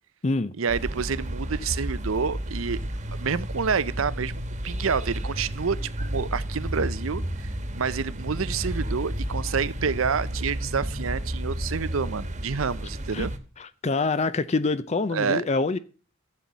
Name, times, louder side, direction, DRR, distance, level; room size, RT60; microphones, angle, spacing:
voice 1, 0.6-2.8 3.2-4.3 4.6-7.5 7.7-13.3 15.1-15.4, right 5 dB, 80° right, 0.7 m, -28 dB
sound 1, 0.7-13.4, right 1 dB, 35° right, 1.4 m, -32 dB
voice 2, 13.6-15.8, left 3 dB, 35° left, 0.5 m, -25 dB
14.0 x 7.7 x 4.1 m
head